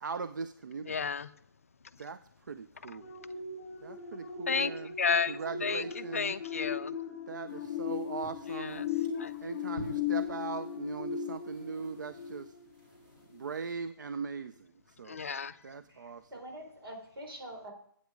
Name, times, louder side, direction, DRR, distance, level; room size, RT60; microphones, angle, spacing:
voice 1, 0.0-0.9 2.0-2.2 2.5-3.1 3.8-5.0 5.3-6.4 7.3-8.9 9.4-12.5 13.3-14.7 15.0-15.2 15.6-16.2, right 5 dB, 55° right, 13 dB, 0.4 m, -39 dB
voice 2, 0.9-1.3 4.5-4.7 5.0-6.9 8.5-8.9 9.2-9.3 15.1-15.5, left 5 dB, 40° left, 13 dB, 0.4 m, -32 dB
sound 1, 3.0-12.9 13.3-13.5, left 8 dB, 20° left, 1.8 m, -38 dB
sound 2, 7.5-13.7, equal, 25° right, 2.4 m, -53 dB
voice 3, 15.9-17.7, right 1 dB, 85° right, 1 dB, 4.2 m, -45 dB
9.4 x 8.5 x 5.1 m, 0.64 s
hypercardioid pair, 180°, 12 cm